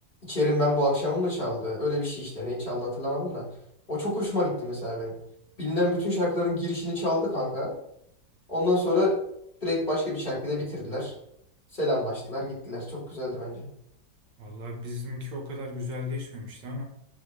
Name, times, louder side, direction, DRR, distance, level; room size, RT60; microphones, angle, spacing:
voice 1, 0.2-3.4 3.9-5.1 5.6-7.8 8.5-9.2 9.6-11.1 11.7-13.7, left 1 dB, 25° left, -7 dB, 2.7 m, -27 dB
voice 2, 14.4-16.8, left 2 dB, 85° right, 0 dB, 2.0 m, -35 dB
11.0 x 3.8 x 3.3 m, 0.75 s
omnidirectional pair, 1.9 m